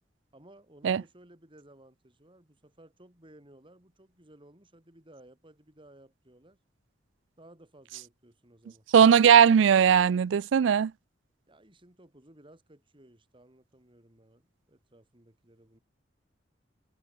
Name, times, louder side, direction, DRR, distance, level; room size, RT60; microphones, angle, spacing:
voice 1, 0.3-6.6 7.4-8.8 11.5-14.4 14.7-15.8, right 1 dB, 30° right, 3.6 m, -57 dB
voice 2, 8.9-10.9, right 8 dB, 90° right, 0.4 m, -19 dB
open air
head